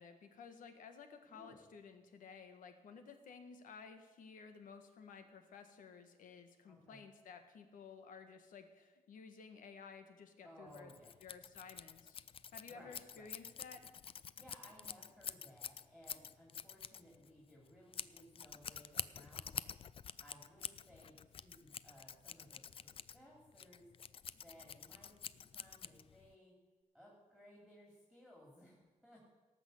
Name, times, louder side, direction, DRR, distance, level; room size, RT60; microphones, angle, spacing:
voice 1, 0.0-10.9 11.2-12.2 12.5-13.8, left 5 dB, 90° left, 7 dB, 1.5 m, -55 dB
voice 2, 1.3-1.7 6.7-7.0 10.4-11.2 12.6-13.3 14.4-26.5 26.9-29.3, equal, 5° left, -4 dB, 3.2 m, -61 dB
Scissors, 10.7-26.3, left 8 dB, 45° left, 0.4 m, -48 dB
17.5 x 6.2 x 8.0 m, 1.3 s
wide cardioid pair, 130°, 13 cm